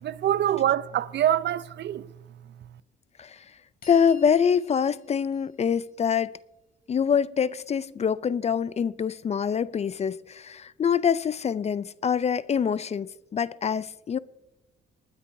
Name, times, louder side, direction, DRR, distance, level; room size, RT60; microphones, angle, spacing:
voice 1, 0.0-2.1, right 11 dB, 60° right, 0.5 m, -25 dB
sound 1, 3.8-6.4, left 5 dB, 50° left, 2.6 m, -53 dB
voice 2, 3.9-6.4 6.9-14.2, left 7 dB, 35° left, 0.4 m, -25 dB
28.0 x 9.8 x 2.6 m
cardioid pair, 90°, 20 cm